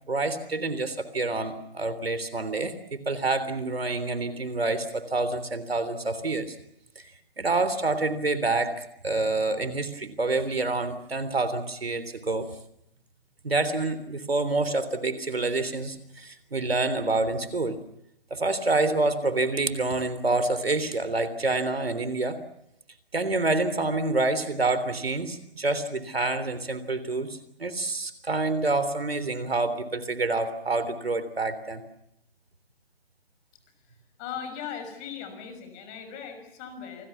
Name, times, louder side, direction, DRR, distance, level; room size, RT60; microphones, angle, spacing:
voice 1, 0.1-6.6 7.4-8.7 9.0-12.5 13.4-17.8 18.3-22.4 23.1-31.8, right 3 dB, 85° right, 13 dB, 3.5 m, -27 dB
voice 2, 34.2-37.1, left 7 dB, 25° left, 8 dB, 6.0 m, -38 dB
28.5 x 21.0 x 7.3 m, 0.80 s
figure-of-eight pair, 140°, 29 cm